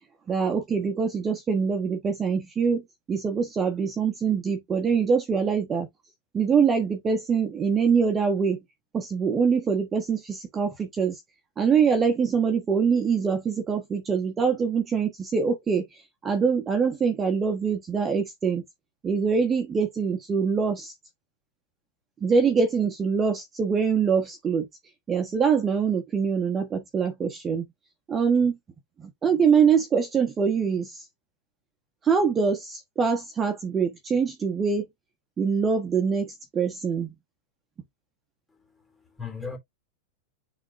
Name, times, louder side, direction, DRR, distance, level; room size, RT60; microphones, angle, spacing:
voice 1, 0.3-2.8 3.1-5.9 6.3-8.6 8.9-11.2 11.6-18.6 19.0-20.9 22.2-24.7 25.1-27.7 28.1-28.6 29.0-31.0 32.0-34.8 35.4-37.1, right 6 dB, 20° right, 1.4 m, -24 dB
voice 2, 38.5-39.6, left 5 dB, 10° left, 2.9 m, -39 dB
9.4 x 3.8 x 2.6 m
hypercardioid pair, 120°, 0 cm